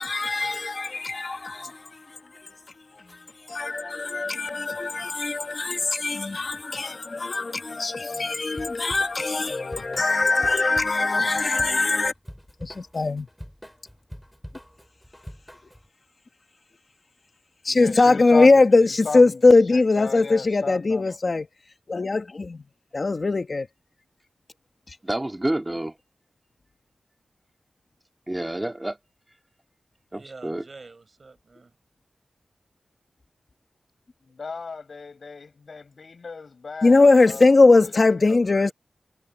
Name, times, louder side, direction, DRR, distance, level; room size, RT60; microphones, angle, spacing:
voice 1, 0.0-2.6 2.9-12.1 12.6-13.3 17.6-21.5 21.9-22.6 22.9-23.7 24.9-25.0 36.8-38.7, left 3 dB, 45° left, 1.4 m, -21 dB
Drum kit / Drum, 8.5-15.9, equal, ahead, 5.2 m, -44 dB
voice 2, 17.7-21.1 34.2-37.5, left 4 dB, 60° left, 7.6 m, -35 dB
voice 3, 25.0-26.0 28.3-29.0 30.1-30.6, right 1 dB, 15° right, 2.2 m, -28 dB
voice 4, 30.1-31.8 33.5-33.8 38.3-38.7, right 3 dB, 45° right, 6.3 m, -46 dB
wide cardioid pair, 115°, 0 cm